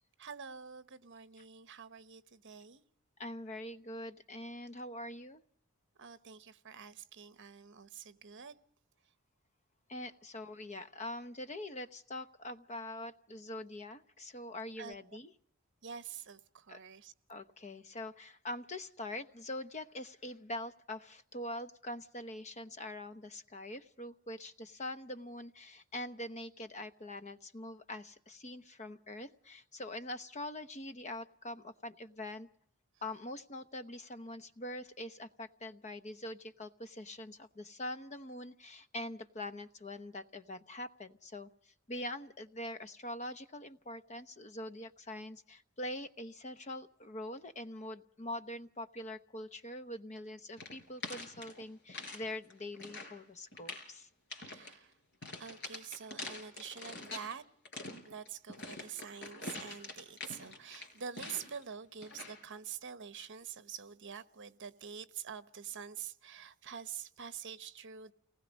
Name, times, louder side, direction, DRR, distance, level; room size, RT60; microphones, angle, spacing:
voice 1, 0.2-2.8 6.0-8.6 14.8-15.0 15.8-17.1 54.4-54.9 55.3-57.4 58.0-68.1, right 7 dB, 60° right, 13 dB, 1.1 m, -46 dB
voice 2, 3.2-5.4 9.9-15.3 16.7-16.8 17.3-32.5 33.0-54.1, left 1 dB, 35° left, 11 dB, 0.9 m, -44 dB
sound 1, 50.6-52.2 52.5-53.2 53.5-53.9 54.3-54.7 55.2-57.3 57.7-61.6 62.0-62.4, left 2 dB, 55° left, 4.8 m, -45 dB
28.5 x 19.5 x 5.2 m, 0.64 s
head